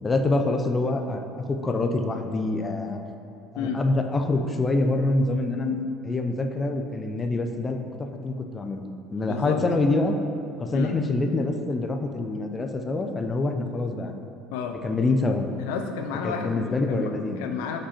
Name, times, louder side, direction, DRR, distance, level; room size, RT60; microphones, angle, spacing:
voice 1, 0.0-3.0 3.5-7.8 8.2-8.8 9.1-10.2 10.6-14.1 14.8-15.5 16.2-17.5, left 2 dB, 25° left, 5 dB, 0.5 m, -25 dB
voice 2, 9.3-9.6 10.7-11.0 14.5-14.8 15.6-17.8, left 7 dB, 85° left, 5 dB, 0.4 m, -32 dB
5.1 x 4.2 x 5.7 m, 2.6 s
supercardioid pair, 85°, 0 cm